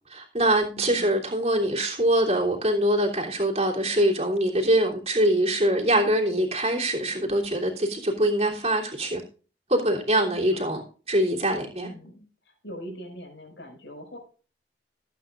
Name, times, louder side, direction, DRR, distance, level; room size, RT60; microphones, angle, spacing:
voice 1, 0.1-9.2 9.7-10.8 11.1-11.9, right 1 dB, 35° right, 3.1 m, -23 dB
voice 2, 0.7-1.1 10.1-10.6 11.8-14.2, equal, 75° left, 5.8 m, -42 dB
18.5 x 8.8 x 2.5 m
head